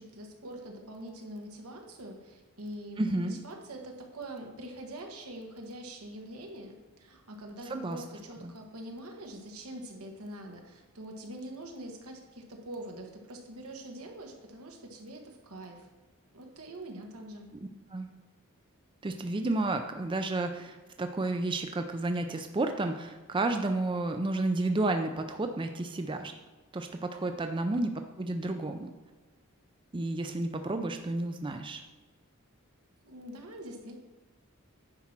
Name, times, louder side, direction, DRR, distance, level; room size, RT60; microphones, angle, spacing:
voice 1, 0.0-15.9 16.3-17.5 33.0-34.0, right 1 dB, 85° right, 2 dB, 1.5 m, -44 dB
voice 2, 3.0-3.4 7.7-8.0 8.4-8.5 17.9-18.1 19.0-26.3 26.7-27.9 28.2-28.9 29.9-31.8, right 2 dB, 20° right, 6 dB, 0.4 m, -31 dB
9.7 x 4.3 x 6.0 m, 1.3 s
head